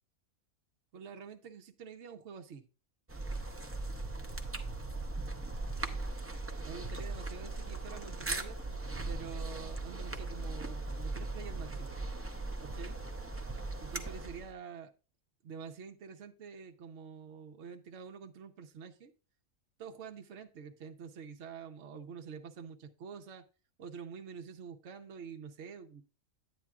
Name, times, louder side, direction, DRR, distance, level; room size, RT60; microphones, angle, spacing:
voice 1, 0.9-2.6 6.3-6.4 6.6-8.6 9.0-12.0 12.6-13.0 13.8-14.9 15.4-19.1 19.8-23.4 23.8-26.0, right 6 dB, 60° right, 1.0 m, -47 dB
sound 1, 3.1-14.5, right 2 dB, 20° right, 0.4 m, -39 dB
10.5 x 8.7 x 2.4 m
omnidirectional pair, 1.4 m